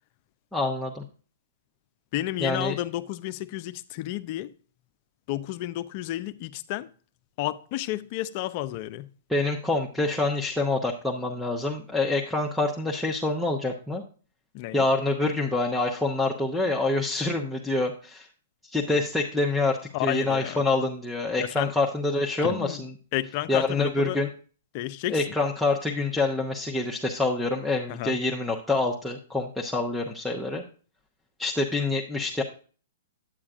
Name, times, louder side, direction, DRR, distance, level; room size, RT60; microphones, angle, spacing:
voice 1, 0.5-1.0 2.4-2.8 9.3-14.0 14.7-18.3 18.7-22.9 23.5-24.3 25.1-30.6 31.4-32.4, left 2 dB, ahead, 0.9 m, -26 dB
voice 2, 2.1-4.5 5.3-6.9 7.4-9.1 14.5-14.8 19.9-20.6 21.4-21.7 22.4-22.8 23.1-24.2 24.7-25.2 27.9-28.2, left 15 dB, 45° left, 0.5 m, -31 dB
9.1 x 8.5 x 2.5 m
hypercardioid pair, 125°, 0 cm